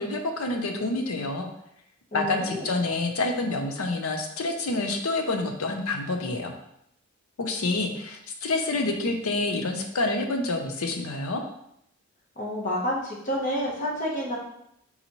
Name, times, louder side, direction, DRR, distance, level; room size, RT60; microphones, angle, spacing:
voice 1, 0.0-1.5 2.1-6.5 7.4-11.4, left 2 dB, 85° left, 4 dB, 0.7 m, -28 dB
voice 2, 2.1-2.7 12.4-14.4, equal, 40° left, -3 dB, 0.9 m, -29 dB
4.2 x 4.0 x 2.9 m, 0.76 s
head